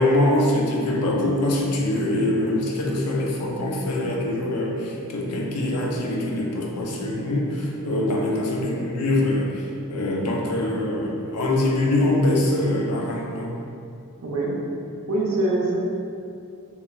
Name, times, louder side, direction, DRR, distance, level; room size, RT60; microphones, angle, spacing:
voice 1, 0.0-13.6, left 1 dB, 90° left, -1 dB, 0.4 m, -23 dB
voice 2, 14.2-14.5 15.1-15.8, right 2 dB, 75° right, -4 dB, 0.5 m, -23 dB
2.9 x 2.1 x 2.2 m, 2.5 s
head